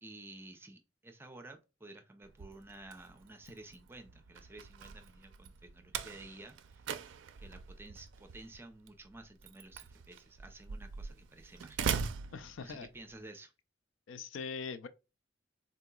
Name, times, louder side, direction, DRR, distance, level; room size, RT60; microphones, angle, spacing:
voice 1, 0.0-6.9 7.4-11.9 12.6-13.5, right 2 dB, 10° right, 0.5 m, -52 dB
Slam, 2.2-13.1, right 6 dB, 70° right, 0.4 m, -42 dB
voice 2, 12.3-12.9 14.1-14.9, left 5 dB, 80° left, 0.4 m, -42 dB
3.8 x 2.8 x 2.2 m
head